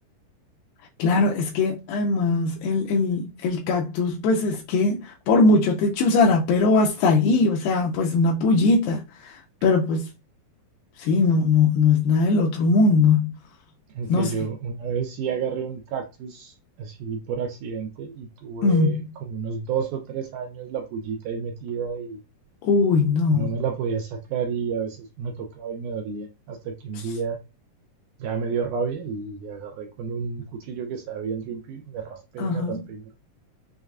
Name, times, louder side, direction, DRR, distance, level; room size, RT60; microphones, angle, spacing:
voice 1, 1.0-10.1 11.0-13.3 14.1-14.3 18.6-19.0 22.6-23.5 32.4-32.8, left 3 dB, 85° left, 2.3 m, -20 dB
voice 2, 13.9-22.2 23.3-27.4 28.2-33.1, right 6 dB, 80° right, 1.8 m, -31 dB
6.4 x 2.2 x 2.3 m
omnidirectional pair, 4.0 m